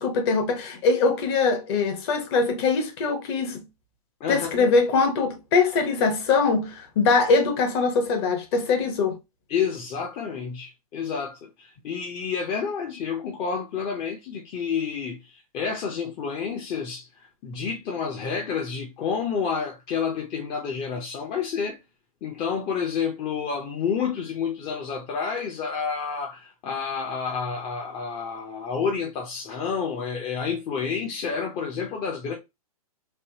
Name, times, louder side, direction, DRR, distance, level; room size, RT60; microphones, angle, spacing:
voice 1, 0.0-3.6 4.3-9.2, left 4 dB, 45° left, 1.0 m, -22 dB
voice 2, 4.2-4.7 9.5-17.1 17.4-21.8 22.2-32.3, left 6 dB, 25° left, 0.6 m, -29 dB
3.3 x 2.6 x 2.8 m
hypercardioid pair, 135°, 19 cm